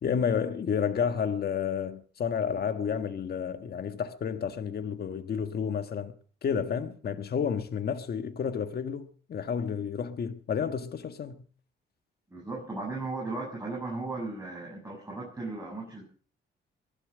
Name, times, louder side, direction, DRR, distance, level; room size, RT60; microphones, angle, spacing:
voice 1, 0.0-6.1 6.4-11.4, left 7 dB, 50° left, 1.6 m, -31 dB
voice 2, 12.3-16.0, right 3 dB, 15° right, 7.8 m, -36 dB
22.0 x 11.5 x 5.1 m
cardioid pair, 90°, 20 cm